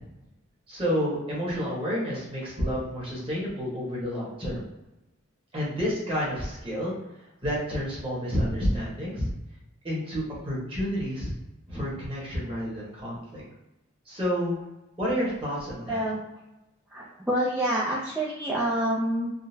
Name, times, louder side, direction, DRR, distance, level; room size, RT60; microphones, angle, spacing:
voice 1, 0.7-4.6 5.5-6.9 7.4-9.3 9.8-11.3 11.7-13.4 14.1-14.6 15.0-16.0, equal, 25° right, -6 dB, 1.2 m, -29 dB
voice 2, 15.9-16.2 16.9-19.3, right 1 dB, 5° right, -6 dB, 0.3 m, -27 dB
3.7 x 2.0 x 2.7 m, 0.96 s
head